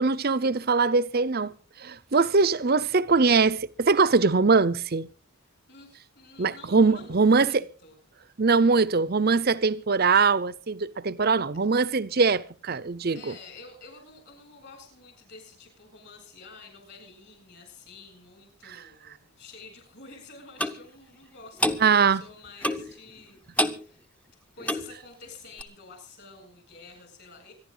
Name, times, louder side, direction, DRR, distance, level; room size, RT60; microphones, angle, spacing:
voice 1, 0.0-1.5 1.8-5.1 6.4-7.6 8.4-13.3 21.8-22.2, right 4 dB, 45° right, 0.7 m, -22 dB
voice 2, 5.4-8.0 13.1-24.1 24.5-27.5, left 3 dB, 50° left, 7.6 m, -49 dB
Clock, 20.6-20.8 21.6-21.8 22.6-22.9 23.6-23.8 24.6-24.9 25.6-25.7, left 1 dB, 5° left, 0.8 m, -26 dB
25.5 x 11.0 x 3.9 m
head